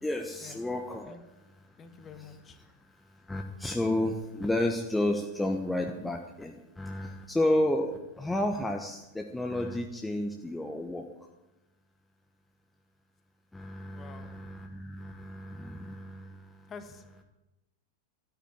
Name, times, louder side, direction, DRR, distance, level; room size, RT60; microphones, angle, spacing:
voice 1, 0.0-1.7 1.9-11.1 13.5-16.7, left 1 dB, 5° left, 3 dB, 1.1 m, -32 dB
voice 2, 1.8-2.6 13.9-14.3 16.7-17.0, left 5 dB, 25° left, 9 dB, 1.6 m, -47 dB
13.5 x 9.1 x 8.7 m, 0.99 s
figure-of-eight pair, 90°, 0 cm